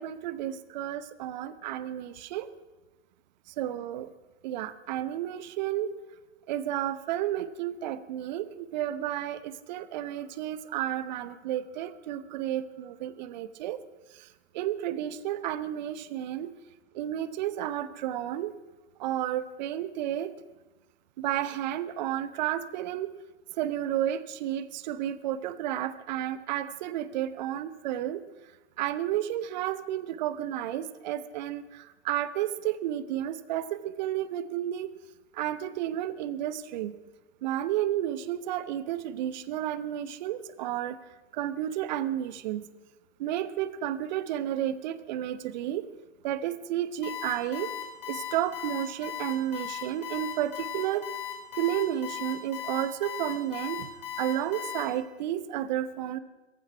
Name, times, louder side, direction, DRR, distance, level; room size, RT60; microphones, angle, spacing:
voice 1, 0.0-2.5 3.6-4.1 4.4-5.9 6.5-13.8 14.5-16.5 16.9-18.5 19.0-20.3 21.2-23.1 23.6-28.2 28.8-31.6 32.0-34.9 35.4-36.9 37.4-41.0 41.3-42.6 43.2-45.8 46.2-47.7 48.1-51.1 51.6-53.9 54.2-56.2, right 12 dB, 45° right, 15 dB, 0.8 m, -31 dB
Alarm, 47.0-54.8, left 9 dB, 55° left, 3.8 m, -36 dB
16.5 x 14.5 x 4.6 m, 1.1 s
figure-of-eight pair, 105°, 33 cm